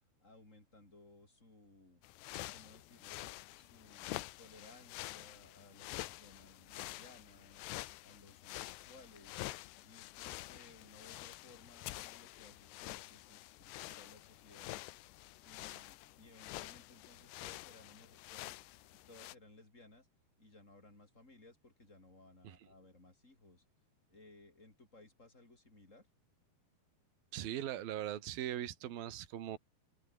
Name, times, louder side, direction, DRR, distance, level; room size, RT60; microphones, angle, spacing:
voice 1, 0.2-2.0 2.5-7.6 8.0-9.4 9.8-14.8 15.4-18.6 19.1-20.1 20.4-23.6 24.1-26.1, left 2 dB, 15° left, 5.8 m, -60 dB
sound 1, 2.0-19.3, left 18 dB, 85° left, 3.0 m, -48 dB
voice 2, 27.3-29.6, right 11 dB, 65° right, 3.7 m, -40 dB
omnidirectional pair, 4.8 m